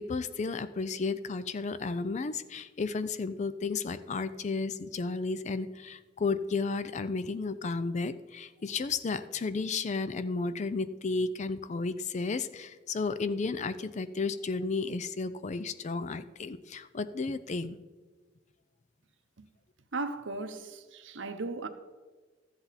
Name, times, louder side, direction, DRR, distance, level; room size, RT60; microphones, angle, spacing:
voice 1, 0.0-17.8, left 4 dB, 40° left, 0.4 m, -33 dB
voice 2, 19.9-21.7, right 3 dB, 85° right, 0.9 m, -36 dB
13.0 x 8.0 x 4.1 m
head